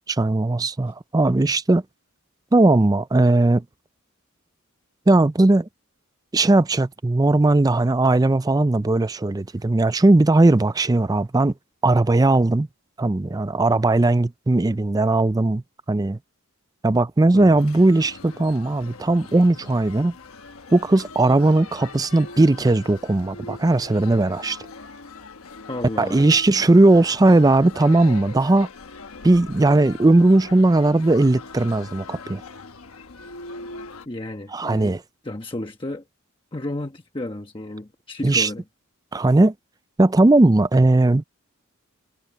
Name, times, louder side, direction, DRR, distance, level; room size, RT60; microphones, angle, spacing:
voice 1, 0.1-1.8 2.5-3.6 5.1-5.7 6.3-11.5 11.8-12.7 13.0-15.6 15.9-16.2 16.8-20.1 20.7-24.6 26.0-28.7 29.2-32.4 34.5-35.0 38.2-38.5 39.1-39.5 40.0-41.2, right 2 dB, 15° right, 0.4 m, -18 dB
voice 2, 17.3-17.6 25.7-26.3 34.1-35.0 35.2-36.0 36.5-38.6, left 1 dB, 25° left, 1.1 m, -32 dB
sound 1, 17.6-34.1, left 3 dB, 80° left, 1.1 m, -41 dB
head